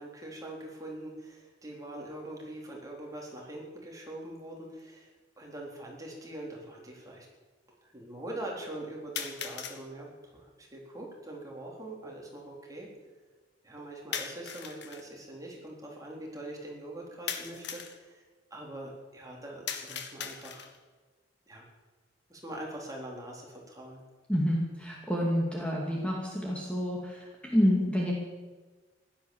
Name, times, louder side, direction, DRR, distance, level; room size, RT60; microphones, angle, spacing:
voice 1, 0.0-5.1 5.4-7.3 7.7-12.9 13.6-18.2 18.5-20.7 21.5-21.7 22.3-24.0, right 1 dB, 20° right, -1 dB, 3.8 m, -43 dB
sound 1, 4.8-4.9 5.9-6.0 9.2-9.8 14.1-15.0 17.3-18.0 19.7-20.8, left 7 dB, 65° left, 1.7 m, -38 dB
voice 2, 24.3-28.1, equal, 5° left, -2 dB, 2.5 m, -28 dB
16.0 x 12.0 x 7.3 m, 1.3 s
head